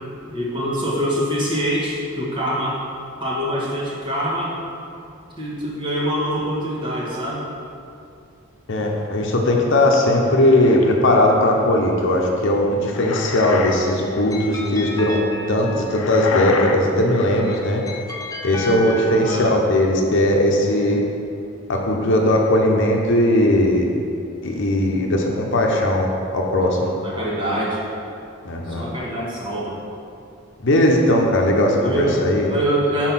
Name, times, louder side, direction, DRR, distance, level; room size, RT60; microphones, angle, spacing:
voice 1, 0.3-2.8 3.2-4.5 5.4-7.4 19.2-19.5 26.6-27.8 28.7-29.8 31.8-32.2 32.5-33.1, equal, 25° right, -6 dB, 1.6 m, -24 dB
voice 2, 8.7-15.2 15.5-17.8 18.4-21.0 21.7-23.9 24.4-26.9 28.4-28.8 30.6-32.5, left 1 dB, 65° left, 0 dB, 0.8 m, -18 dB
sound 1, 9.9-10.8 12.6-13.8 14.1-14.4 15.9-17.7, left 4 dB, 90° left, 0.6 m, -28 dB
sound 2, 13.8-16.3 17.2-19.6, left 2 dB, 15° left, 0.7 m, -33 dB
6.3 x 4.4 x 5.8 m, 2.5 s
head